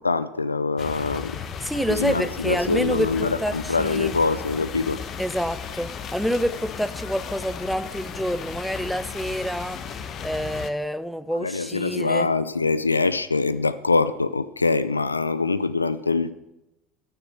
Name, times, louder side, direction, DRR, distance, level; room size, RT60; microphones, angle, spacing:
voice 1, 0.0-1.4 1.7-5.0 11.3-16.3, left 3 dB, 85° left, 0.4 m, -24 dB
sound 1, 0.8-10.7, left 6 dB, 40° left, 1.0 m, -35 dB
voice 2, 1.6-4.2 5.2-9.8 10.2-12.3, equal, ahead, 0.7 m, -27 dB
11.5 x 7.1 x 8.3 m
figure-of-eight pair, 70°, 0 cm